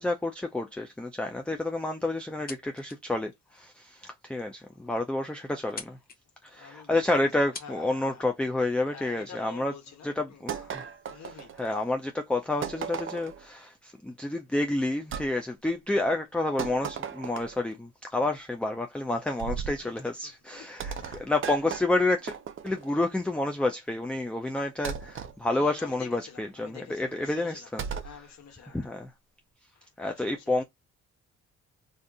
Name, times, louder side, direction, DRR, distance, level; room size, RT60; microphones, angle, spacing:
voice 1, 0.0-6.0 6.4-9.7 10.0-10.9 11.2-22.4 22.6-28.1 28.7-29.1 30.0-30.6, left 2 dB, 5° left, 0.4 m, -29 dB
sound 1, 2.2-3.1 3.5-3.6 4.3-4.4 4.7-4.8 5.0-5.3 5.6-6.2 7.1-7.2 7.5-7.7, left 4 dB, 30° left, 0.8 m, -43 dB
voice 2, 4.8-5.2 5.6-5.7 6.4-7.3 7.6-8.3 8.9-10.7 11.0-11.6 14.9-15.0 16.0-16.1 19.8-21.3 25.5-27.7 28.0-28.9 29.7-30.6, left 7 dB, 60° left, 1.3 m, -49 dB
sound 2, 10.5-11.9 12.6-13.4 15.1-15.3 16.6-17.7 19.4-19.8 20.8-22.9 24.8-25.3 27.8-28.2, right 7 dB, 45° right, 0.6 m, -36 dB
2.6 x 2.5 x 3.5 m
cardioid pair, 90°, 30 cm